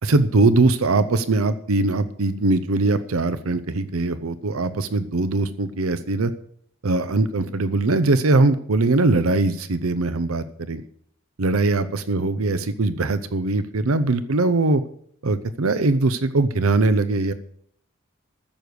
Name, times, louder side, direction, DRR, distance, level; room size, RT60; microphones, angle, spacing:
voice 1, 0.0-6.3 6.8-10.8 11.4-14.8 15.2-17.3, right 3 dB, 80° right, 12 dB, 0.7 m, -21 dB
14.0 x 6.9 x 6.3 m, 0.65 s
head